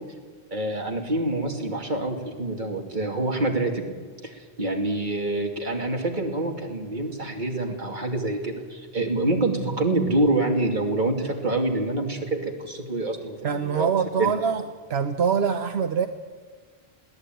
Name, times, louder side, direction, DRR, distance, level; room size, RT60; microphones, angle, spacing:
voice 1, 0.5-3.9 4.2-13.9 14.2-14.3, right 2 dB, 50° right, 1 dB, 2.9 m, -26 dB
voice 2, 13.4-14.6 14.9-16.1, right 7 dB, 80° right, 7 dB, 1.2 m, -24 dB
22.0 x 17.0 x 9.3 m, 1.5 s
omnidirectional pair, 1.0 m